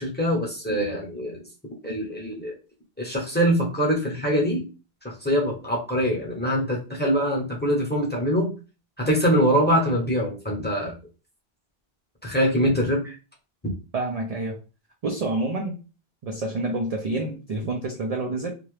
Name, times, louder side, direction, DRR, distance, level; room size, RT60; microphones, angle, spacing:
voice 1, 0.0-1.4 1.8-2.5 3.0-4.6 5.0-8.5 9.0-11.0 12.2-13.2 13.6-13.7, equal, 10° left, -3 dB, 0.8 m, -23 dB
voice 2, 13.9-14.6 15.0-15.8 16.2-18.5, right 2 dB, 50° right, 1 dB, 0.5 m, -28 dB
2.8 x 2.4 x 3.2 m, 0.32 s
omnidirectional pair, 1.0 m